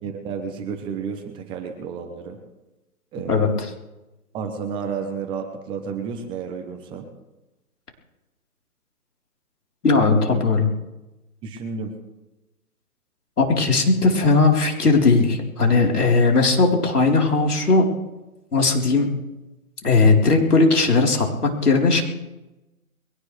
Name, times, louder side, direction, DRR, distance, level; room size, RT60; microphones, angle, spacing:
voice 1, 0.0-2.4 3.1-3.5 4.3-7.1 9.9-10.4 11.4-11.9, right 6 dB, 10° right, 5 dB, 0.9 m, -31 dB
voice 2, 9.8-10.7 13.4-17.9 18.5-19.1 19.8-22.0, left 3 dB, 90° left, 0 dB, 4.2 m, -18 dB
22.5 x 18.0 x 3.4 m, 1.0 s
hypercardioid pair, 150°, 44 cm